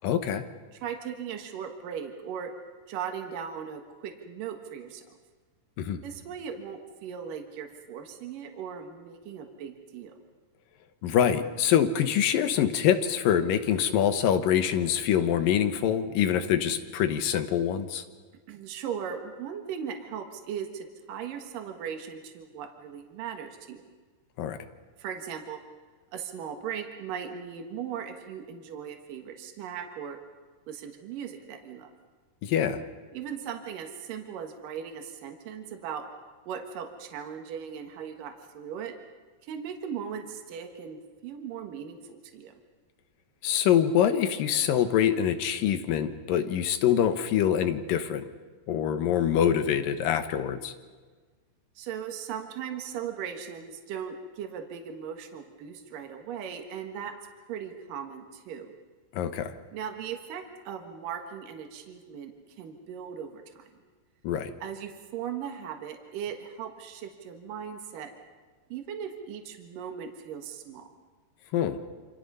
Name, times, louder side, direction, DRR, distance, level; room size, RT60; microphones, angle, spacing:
voice 1, 0.0-0.4 5.8-6.0 11.0-18.0 24.4-24.6 32.4-32.8 43.4-48.3 48.7-50.7 59.1-59.6 64.2-64.5 71.5-71.8, left 9 dB, 85° left, 9 dB, 2.9 m, -25 dB
voice 2, 0.7-2.5 2.9-5.0 6.0-10.2 18.5-23.8 25.0-25.6 26.1-30.2 30.7-31.9 33.1-36.0 36.5-38.9 39.4-42.5 51.8-57.1 57.5-58.7 59.7-63.7 64.6-68.1 68.7-70.9, right 8 dB, 75° right, 4 dB, 3.1 m, -38 dB
28.0 x 26.5 x 5.6 m, 1.4 s
omnidirectional pair, 3.9 m